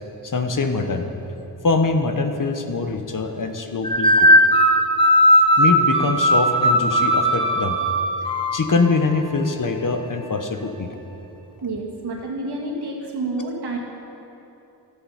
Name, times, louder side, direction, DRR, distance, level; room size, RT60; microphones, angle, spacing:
voice 1, 0.2-1.1 1.6-4.3 5.6-7.8 8.5-10.9, left 3 dB, 50° left, 6 dB, 1.1 m, -23 dB
sound 1, 3.8-8.9, equal, 15° left, 1.0 m, -17 dB
voice 2, 11.6-13.8, right 2 dB, 70° right, -2 dB, 2.1 m, -29 dB
12.5 x 7.9 x 5.7 m, 2.9 s
cardioid pair, 60°, 41 cm